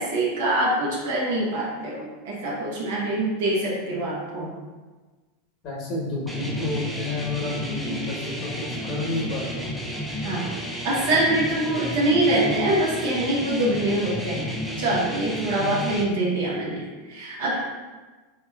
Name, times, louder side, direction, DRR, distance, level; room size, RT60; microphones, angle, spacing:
voice 1, 0.0-4.5 10.2-10.5 10.8-17.6, right 1 dB, 70° right, -4 dB, 0.6 m, -24 dB
voice 2, 5.6-9.6 15.6-15.8, left 2 dB, 40° left, -4 dB, 1.0 m, -30 dB
sound 1, 6.3-16.0, equal, ahead, 0.4 m, -32 dB
3.0 x 2.2 x 2.3 m, 1.3 s
hypercardioid pair, 105°, 0 cm